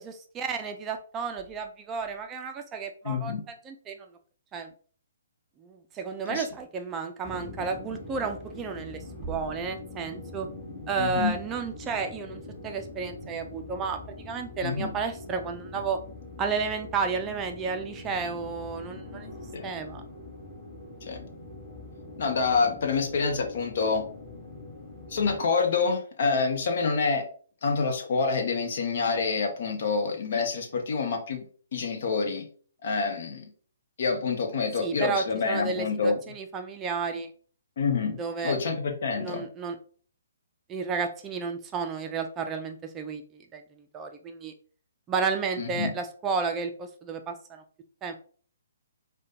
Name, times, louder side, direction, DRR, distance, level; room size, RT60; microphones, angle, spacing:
voice 1, 0.0-3.3 3.6-4.0 4.5-4.7 5.6-10.5 10.9-14.0 14.3-16.0 16.4-19.3 19.6-20.0 34.8-37.3 38.2-38.6 39.2-39.8 40.7-43.6 43.9-44.5 45.1-47.6 48.0-48.1, right 5 dB, 20° right, 5 dB, 0.4 m, -32 dB
voice 2, 3.0-3.4 6.3-6.5 11.0-11.4 14.6-14.9 19.5-19.7 21.1-21.2 22.2-24.1 25.1-27.3 27.6-32.5 32.8-33.5 34.0-36.2 37.8-39.5 45.6-45.9, left 4 dB, 55° left, 4 dB, 0.9 m, -27 dB
sound 1, 7.2-25.4, left 2 dB, 20° left, 1.8 m, -43 dB
4.8 x 2.2 x 2.7 m, 0.43 s
figure-of-eight pair, 135°, 0 cm